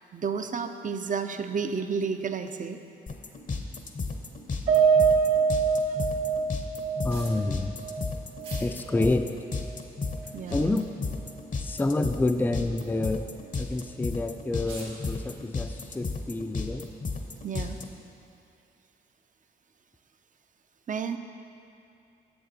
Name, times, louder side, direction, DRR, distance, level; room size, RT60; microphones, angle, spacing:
voice 1, 0.1-2.8 5.9-6.0 10.3-10.7 17.4-17.8 20.9-21.2, right 5 dB, 45° right, 8 dB, 0.5 m, -31 dB
sound 1, 3.1-17.8, left 4 dB, 40° left, 0.7 m, -33 dB
Piano, 4.7-9.2 9.5-9.7 10.1-10.2, right 6 dB, 60° right, 1.4 m, -25 dB
voice 2, 7.0-7.8 8.6-9.3 10.5-10.9 11.6-13.2 13.6-16.9, left 2 dB, 10° left, 7 dB, 0.4 m, -28 dB
sound 2, 7.1-7.4 8.4-8.7 9.2-9.3 10.1-10.8 11.5-11.8 12.1-12.2 12.8-13.1 14.0-14.1 14.5-15.0, right 2 dB, 90° right, 1.6 m, -46 dB
7.1 x 6.9 x 4.0 m, 2.6 s
supercardioid pair, 50°, 19 cm